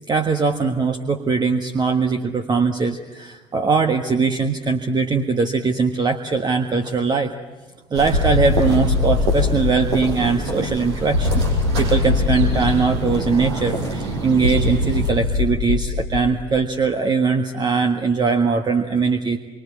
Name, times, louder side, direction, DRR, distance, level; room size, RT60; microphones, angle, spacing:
voice 1, 0.1-7.3 7.9-11.4 11.8-19.4, right 4 dB, 30° right, 6 dB, 1.6 m, -21 dB
sound 1, 7.9-15.1, right 2 dB, 70° right, 6.1 m, -27 dB
sound 2, 8.1-10.4 11.1-13.4 14.4-16.7, left 4 dB, 85° left, 2.2 m, -22 dB
27.5 x 25.0 x 8.5 m, 1.3 s
figure-of-eight pair, 55°, 15 cm